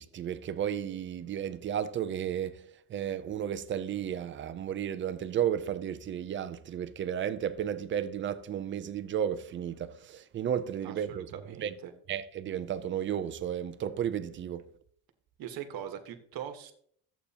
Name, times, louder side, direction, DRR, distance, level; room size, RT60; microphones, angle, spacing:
voice 1, 0.0-2.6 2.9-11.3 11.6-11.7 12.1-14.6, right 9 dB, 30° right, 0.4 m, -33 dB
voice 2, 10.8-11.9 15.4-16.7, right 9 dB, 50° right, 1.3 m, -41 dB
13.5 x 8.2 x 2.8 m
cardioid pair, 170°, 46 cm